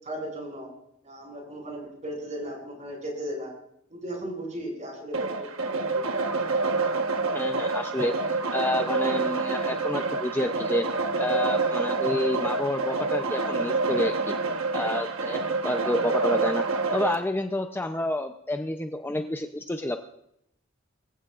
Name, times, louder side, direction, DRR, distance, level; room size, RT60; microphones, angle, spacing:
voice 1, 0.0-0.7 1.0-3.5 3.9-5.5 5.9-6.2, right 1 dB, 35° right, 0 dB, 6.7 m, -36 dB
sound 1, 5.1-17.2, right 3 dB, 80° right, 1.3 m, -27 dB
voice 2, 7.3-8.2 8.5-10.9 11.2-14.3 14.7-20.0, left 1 dB, 10° left, 6 dB, 0.6 m, -29 dB
24.0 x 15.0 x 2.5 m, 0.77 s
head